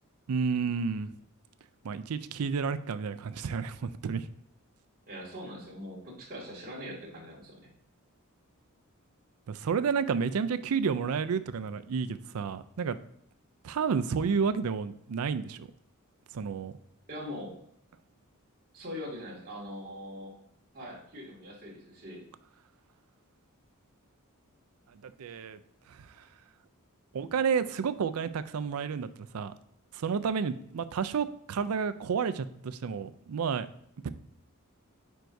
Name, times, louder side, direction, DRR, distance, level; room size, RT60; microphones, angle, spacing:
voice 1, 0.3-1.1 1.8-4.3 9.5-13.0 13.6-15.7 16.3-16.7 24.9-25.6 25.9-26.2 27.1-29.5 29.9-33.7 34.0-34.1, right 6 dB, 85° right, 12 dB, 0.4 m, -31 dB
voice 2, 5.1-7.6 17.1-17.6 18.7-20.3 20.7-22.2, left 1 dB, 45° right, -4 dB, 2.2 m, -42 dB
9.3 x 4.5 x 2.6 m, 0.72 s
head